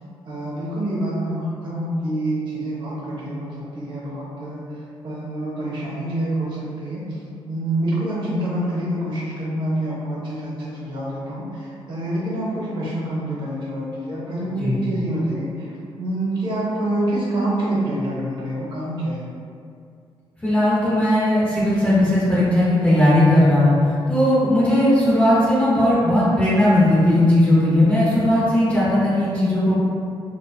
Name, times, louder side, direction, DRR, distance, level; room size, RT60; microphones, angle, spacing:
voice 1, 0.3-19.3, right 1 dB, 55° right, -6 dB, 0.8 m, -27 dB
voice 2, 20.4-23.8 24.1-29.8, left 1 dB, 15° left, -9 dB, 0.6 m, -17 dB
2.4 x 2.1 x 2.5 m, 2.3 s
cardioid pair, 130°, 10 cm